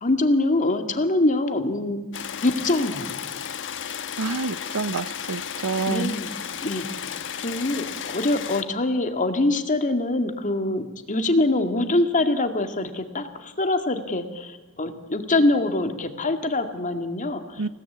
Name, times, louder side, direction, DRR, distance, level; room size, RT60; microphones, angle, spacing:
voice 1, 0.0-3.1 5.9-6.3 6.6-6.9 7.4-17.7, left 2 dB, 35° left, 2.2 m, -24 dB
sound 1, 2.1-8.6, left 8 dB, 60° left, 1.2 m, -33 dB
voice 2, 4.2-6.1 17.6-17.7, right 4 dB, 85° right, 0.8 m, -28 dB
28.5 x 17.5 x 8.6 m
head